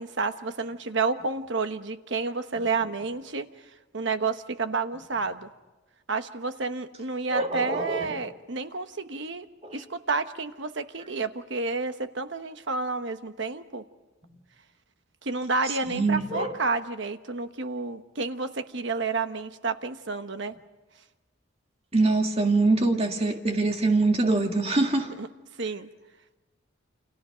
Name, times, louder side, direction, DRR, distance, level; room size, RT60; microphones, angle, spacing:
voice 1, 0.0-3.5 3.9-5.5 6.1-9.5 9.7-13.8 15.2-20.5 25.1-25.3 25.6-25.9, right 4 dB, 60° right, 9 dB, 1.1 m, -30 dB
voice 2, 7.3-8.0 9.6-9.8 15.9-16.5 21.9-25.1, right 3 dB, 30° right, 3 dB, 2.1 m, -24 dB
29.0 x 27.5 x 5.1 m, 1.1 s
head